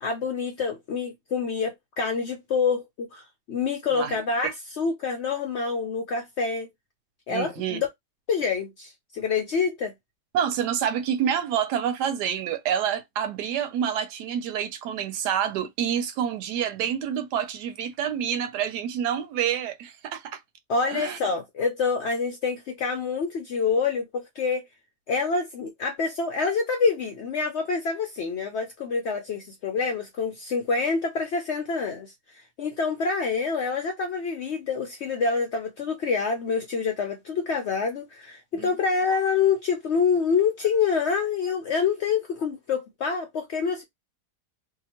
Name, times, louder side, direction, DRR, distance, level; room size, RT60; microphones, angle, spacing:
voice 1, 0.0-3.2 3.5-6.7 7.3-7.9 8.3-9.9 20.7-24.6 25.1-43.8, left 5 dB, 75° left, 0.6 m, -27 dB
voice 2, 7.3-7.8 10.3-20.4 20.9-21.2 38.5-38.7, right 9 dB, 90° right, 1.2 m, -28 dB
2.8 x 2.3 x 2.8 m
omnidirectional pair, 1.7 m